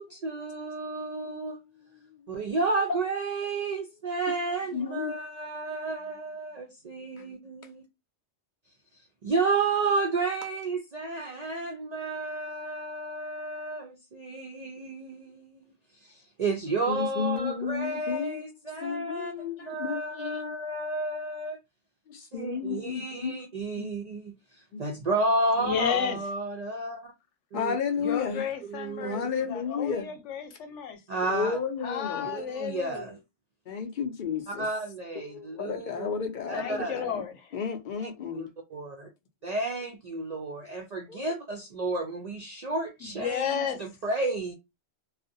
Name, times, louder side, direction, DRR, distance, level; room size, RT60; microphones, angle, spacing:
voice 1, 0.0-1.6 2.3-7.8 9.2-15.7 16.0-21.6 22.2-27.1 27.5-27.8 28.7-29.3 31.1-31.6 32.3-33.2 34.5-36.1 36.5-36.9 38.3-39.1 39.4-44.5, right 3 dB, 65° right, 0.4 m, -32 dB
voice 2, 1.0-2.4 4.7-5.2 16.9-18.4 18.8-20.6 22.1-23.4 23.8-23.9 24.7-24.8 27.5-28.4 29.0-30.1 31.3-32.3 33.7-34.7 35.2-37.2 37.5-38.5 41.1-41.3, left 6 dB, 60° left, 0.5 m, -33 dB
voice 3, 25.6-26.2 28.0-29.2 29.5-31.0 31.8-33.1 36.5-37.3 43.0-43.8, left 8 dB, 85° left, 0.9 m, -32 dB
2.4 x 2.0 x 2.6 m
omnidirectional pair, 1.2 m